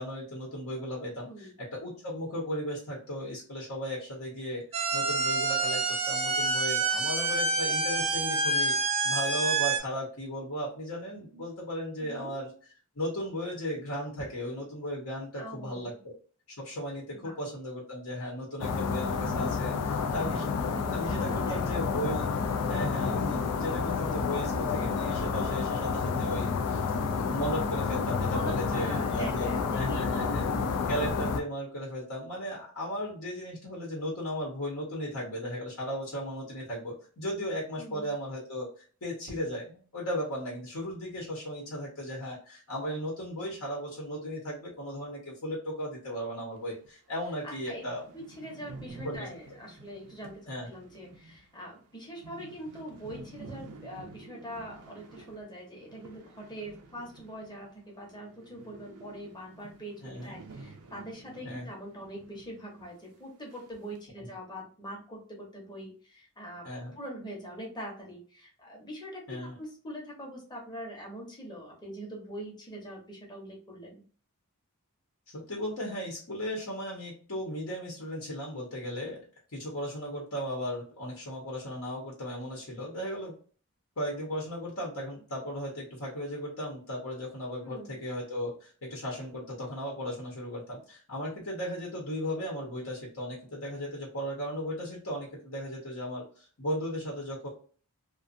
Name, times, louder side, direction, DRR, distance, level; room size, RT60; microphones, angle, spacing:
voice 1, 0.0-12.5 12.9-16.1 16.6-20.5 20.9-22.3 22.7-26.8 27.2-30.4 30.9-48.0 49.0-49.3 50.5-50.7 60.0-60.4 61.4-61.7 66.6-66.9 69.3-69.5 75.5-79.2 79.5-83.3 84.0-97.5, equal, 70° left, -3 dB, 1.0 m, -36 dB
voice 2, 1.2-1.5 6.9-7.3 12.0-12.3 15.4-16.0 17.1-17.3 20.2-21.7 28.3-30.8 37.8-38.1 47.4-47.8 48.1-66.7 67.0-74.0 87.6-88.0, equal, 20° left, -1 dB, 0.9 m, -43 dB
sound 1, 4.7-9.8, right 3 dB, 25° right, 0.4 m, -27 dB
sound 2, 18.6-31.4, left 5 dB, 85° left, 0.4 m, -30 dB
sound 3, 46.8-46.9 47.3-47.4 47.5-57.8 58.0-62.5 62.8-62.9 63.5-64.0, right 3 dB, 85° right, 0.6 m, -50 dB
2.5 x 2.3 x 2.5 m, 0.41 s
head